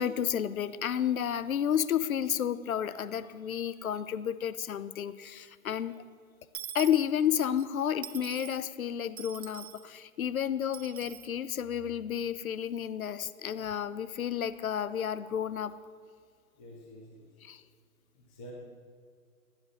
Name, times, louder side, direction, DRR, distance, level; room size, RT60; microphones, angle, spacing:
voice 1, 0.0-6.0 6.7-15.7 17.4-17.6, left 9 dB, 75° left, 15 dB, 1.0 m, -31 dB
Dishes pots and pans / Coin (dropping), 6.5-7.7 8.0-8.6 9.2-9.9 10.7-11.3, right 10 dB, 50° right, 0.8 m, -43 dB
voice 2, 16.6-17.3 18.1-18.5, equal, 5° left, -2 dB, 0.4 m, -49 dB
15.5 x 10.5 x 8.1 m, 2.1 s
hypercardioid pair, 150°, 42 cm